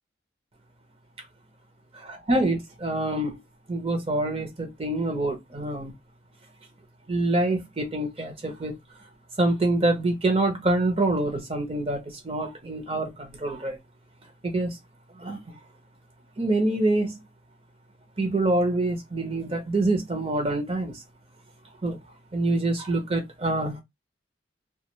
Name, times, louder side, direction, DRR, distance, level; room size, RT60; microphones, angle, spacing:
voice 1, 2.0-3.4 3.7-5.9 7.1-8.7 9.4-13.8 14.4-14.7 15.2-15.4 16.4-17.1 18.2-20.9 21.8-22.0 22.3-23.8, right 2 dB, 30° right, 0.7 m, -26 dB
2.3 x 2.3 x 3.0 m
head